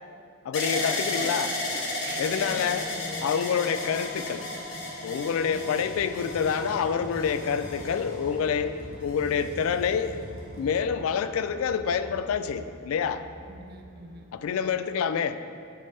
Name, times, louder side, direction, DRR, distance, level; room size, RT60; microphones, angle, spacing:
voice 1, 0.5-1.5 2.2-4.5 5.0-10.2 10.6-13.2 14.3-15.4, left 7 dB, 75° left, 13 dB, 0.3 m, -27 dB
sound 1, 0.5-8.5 9.3-9.9, left 2 dB, 60° left, 1.0 m, -34 dB
voice 2, 1.7-3.0 3.4-3.5 5.2-5.8 13.5-14.3, right 3 dB, 45° right, 4 dB, 0.5 m, -44 dB
sound 2, 2.0-14.3, left 1 dB, 35° left, 0.6 m, -44 dB
sound 3, 5.7-10.7, equal, 65° right, 1.3 m, -46 dB
9.7 x 3.3 x 4.2 m, 2.3 s
head